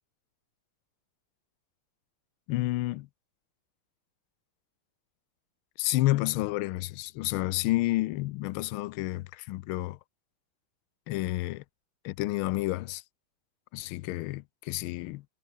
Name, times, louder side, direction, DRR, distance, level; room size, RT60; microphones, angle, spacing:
voice 1, 2.5-3.1 5.8-10.0 11.1-11.6 12.0-13.0 13.7-15.2, left 18 dB, 85° left, 1.4 m, -30 dB
omnidirectional pair, 2.3 m